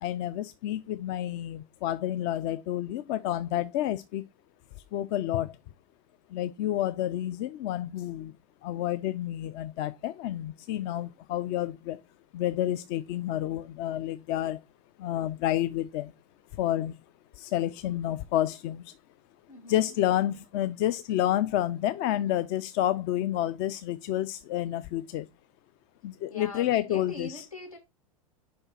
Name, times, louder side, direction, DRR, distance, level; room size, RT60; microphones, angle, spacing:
voice 1, 0.0-4.2 4.9-5.6 6.3-8.3 8.6-12.0 12.3-14.6 15.0-16.1 16.6-16.9 17.4-18.9 19.7-25.3 26.0-27.4, left 12 dB, 35° left, 0.4 m, -29 dB
voice 2, 19.5-19.9 26.3-27.8, left 2 dB, 85° left, 2.2 m, -42 dB
5.1 x 4.4 x 4.3 m
figure-of-eight pair, 95°, 18 cm